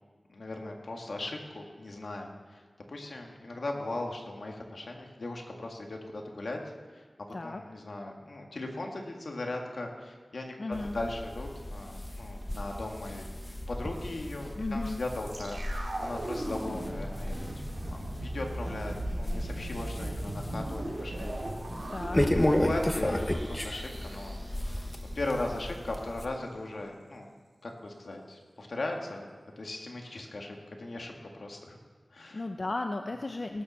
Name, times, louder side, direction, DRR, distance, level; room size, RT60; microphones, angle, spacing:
voice 1, 0.3-2.6 2.9-6.6 6.9-7.0 7.4-10.6 10.9-17.5 17.9-21.3 22.5-24.4 25.2-27.3 27.6-29.3 29.6-31.1 31.4-31.8 32.1-32.4, left 2 dB, 80° left, 1 dB, 1.9 m, -38 dB
voice 2, 10.6-11.0 14.6-15.0 21.9-22.3 32.3-33.6, left 2 dB, 55° left, 5 dB, 0.6 m, -34 dB
sound 1, 10.7-26.3, left 1 dB, 20° left, 1.1 m, -34 dB
sound 2, 15.3-25.4 25.7-25.8, right 1 dB, 85° right, 2.7 m, -39 dB
18.0 x 7.1 x 6.3 m, 1.5 s
wide cardioid pair, 80°, 0 cm